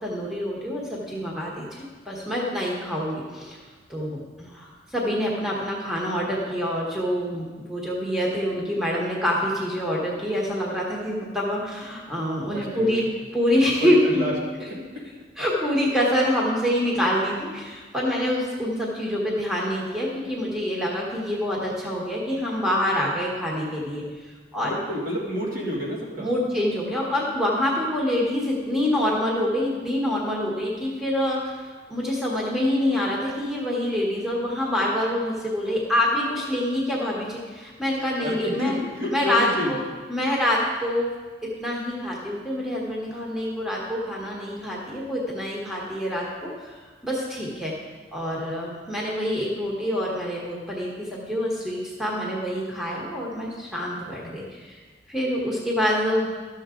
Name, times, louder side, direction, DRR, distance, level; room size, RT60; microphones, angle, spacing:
voice 1, 0.0-3.6 3.9-13.0 13.3-14.2 15.4-24.0 24.5-24.7 26.2-38.8 39.1-39.8 40.1-41.1 41.4-46.7 47.0-47.7 48.1-54.8 55.1-56.3, left 1 dB, 5° right, -4 dB, 1.4 m, -26 dB
voice 2, 12.5-13.0 13.8-14.3 24.6-26.3 38.2-39.7, equal, 55° right, -4 dB, 2.2 m, -29 dB
12.5 x 7.1 x 3.8 m, 1.4 s
head